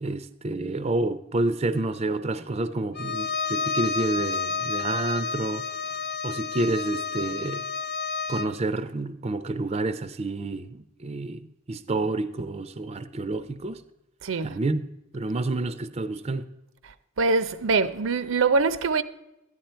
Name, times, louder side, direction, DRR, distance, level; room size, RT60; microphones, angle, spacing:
voice 1, 0.0-5.6 6.2-7.6 8.3-13.8 14.4-14.8 15.1-16.5, right 2 dB, 30° right, 0.5 m, -29 dB
Bowed string instrument, 3.0-8.6, left 5 dB, 55° left, 0.8 m, -30 dB
voice 2, 14.2-14.6 17.2-19.0, right 4 dB, 75° right, 0.6 m, -23 dB
13.5 x 10.5 x 4.4 m
head